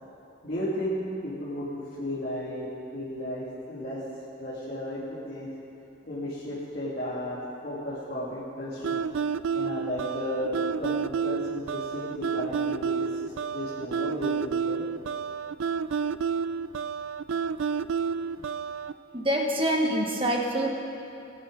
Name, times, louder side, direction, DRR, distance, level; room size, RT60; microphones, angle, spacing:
voice 1, 0.4-2.7 2.9-4.0 4.4-5.5 6.1-9.0 9.5-14.8, equal, 50° left, -9 dB, 2.4 m, -34 dB
sound 1, 8.8-18.9, right 6 dB, 85° right, 0.4 m, -30 dB
voice 2, 19.1-20.7, right 1 dB, 30° right, 0 dB, 1.4 m, -25 dB
20.0 x 10.5 x 4.0 m, 2.9 s
head